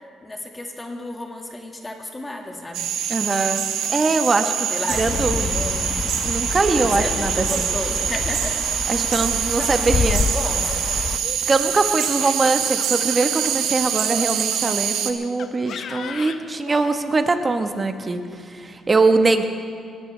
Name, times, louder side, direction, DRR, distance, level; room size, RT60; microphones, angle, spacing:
voice 1, 0.2-2.9 4.7-5.9 6.7-8.6 9.2-10.7, left 1 dB, 20° left, 2 dB, 1.9 m, -33 dB
sound 1, 2.7-15.1, right 9 dB, 90° right, 1.0 m, -25 dB
voice 2, 3.1-3.6 3.9-4.7 5.0-5.6 6.2-7.7 8.9-10.3 11.5-19.4, right 3 dB, 30° right, 6 dB, 1.2 m, -22 dB
sound 2, 4.9-11.2, left 5 dB, 45° left, 0.5 m, -27 dB
Laughter, 10.4-14.8 15.4-16.9, left 7 dB, 65° left, 0.9 m, -37 dB
21.5 x 17.0 x 3.4 m, 2.2 s
cardioid pair, 90°, 0 cm